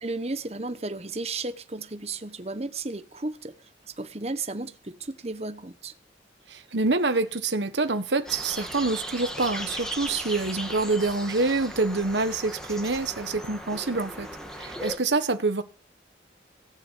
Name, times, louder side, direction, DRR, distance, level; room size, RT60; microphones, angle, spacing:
voice 1, 0.0-5.9, right 3 dB, 35° right, 1.1 m, -34 dB
voice 2, 6.5-14.3 14.5-15.6, right 3 dB, 75° right, 1.4 m, -26 dB
sound 1, 8.3-15.0, equal, 5° left, 1.7 m, -37 dB
17.5 x 6.9 x 8.3 m
head